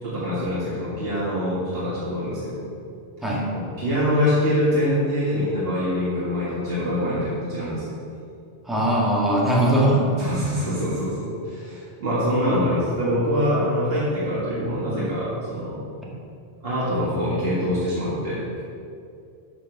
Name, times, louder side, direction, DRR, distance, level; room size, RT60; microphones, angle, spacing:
voice 1, 0.0-2.6 3.5-7.9 10.2-15.8 16.6-18.4, equal, 65° right, -9 dB, 2.0 m, -24 dB
voice 2, 8.7-10.1, right 1 dB, ahead, -5 dB, 1.7 m, -20 dB
8.5 x 5.2 x 6.0 m, 2.5 s
omnidirectional pair, 1.0 m